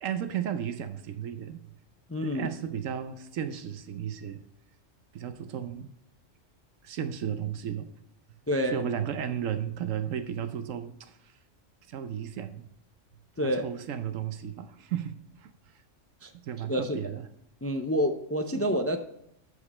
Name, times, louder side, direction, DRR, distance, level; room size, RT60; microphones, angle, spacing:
voice 1, 0.0-1.6 2.3-4.4 5.1-5.9 6.8-7.9 8.7-11.4 11.9-12.7 13.4-15.8 16.4-17.3 18.5-18.7, right 9 dB, 90° right, 9 dB, 1.1 m, -34 dB
voice 2, 2.1-2.5 8.5-8.8 13.4-13.6 16.2-16.3 16.7-17.0 17.6-19.0, equal, 20° left, 6 dB, 0.3 m, -28 dB
13.0 x 5.0 x 4.2 m, 0.76 s
omnidirectional pair, 1.3 m